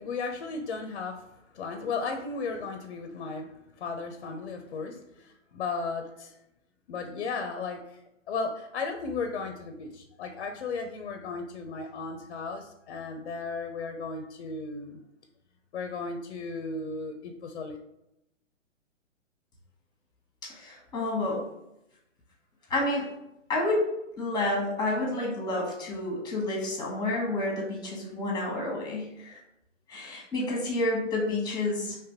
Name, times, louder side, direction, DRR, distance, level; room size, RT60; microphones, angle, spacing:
voice 1, 0.0-6.4 6.9-8.0 8.3-15.0 15.7-17.8, left 4 dB, 45° left, 5 dB, 0.6 m, -35 dB
voice 2, 20.4-21.5 22.7-23.2 23.5-29.4 29.9-32.0, left 2 dB, 10° left, -1 dB, 1.2 m, -30 dB
4.9 x 3.1 x 3.0 m, 0.86 s
figure-of-eight pair, 125°, 38 cm